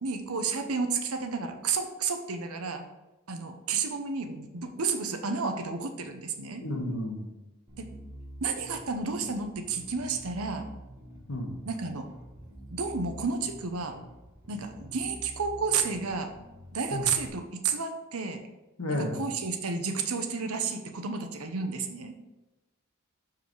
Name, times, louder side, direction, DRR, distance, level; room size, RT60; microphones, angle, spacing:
voice 1, 0.0-2.8 3.3-6.6 7.8-7.9 8.4-10.7 11.7-12.1 12.7-14.0 14.5-16.3 16.7-18.4 18.9-22.1, right 5 dB, 80° right, 6 dB, 0.8 m, -31 dB
voice 2, 6.6-7.2 11.3-11.6 16.9-17.1 18.8-19.2, left 1 dB, 65° left, 1 dB, 1.4 m, -32 dB
Bass guitar, 7.7-17.3, equal, 15° right, 1.6 m, -47 dB
6.7 x 4.9 x 4.6 m, 1.1 s
head